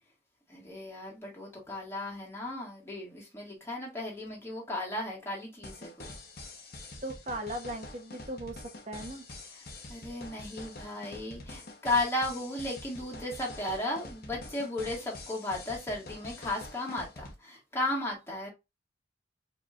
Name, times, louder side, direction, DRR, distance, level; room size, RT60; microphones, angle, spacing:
voice 1, 0.5-6.1 9.9-18.5, left 1 dB, 15° left, 1.7 m, -35 dB
sound 1, 5.6-17.3, left 2 dB, 55° left, 1.0 m, -46 dB
voice 2, 7.0-9.3, right 1 dB, 40° right, 0.9 m, -38 dB
5.0 x 3.1 x 2.4 m
head